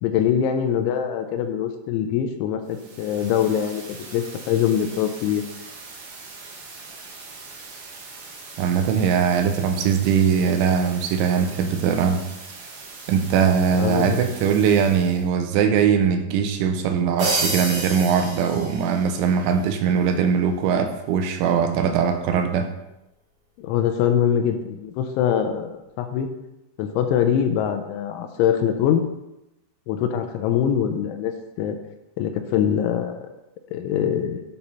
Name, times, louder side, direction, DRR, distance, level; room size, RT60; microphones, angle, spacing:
voice 1, 0.0-5.4 13.8-14.2 23.6-26.3 26.8-29.0 29.9-31.8 32.2-33.2 33.7-34.4, left 9 dB, 85° left, 7 dB, 2.9 m, -23 dB
sound 1, 2.6-15.3, right 4 dB, 60° right, 3.0 m, -41 dB
voice 2, 8.6-12.2 13.1-22.7, right 7 dB, 80° right, 6 dB, 3.0 m, -21 dB
sound 2, 17.2-19.3, right 2 dB, 45° right, 2.3 m, -27 dB
9.7 x 4.4 x 5.4 m, 0.91 s
omnidirectional pair, 5.6 m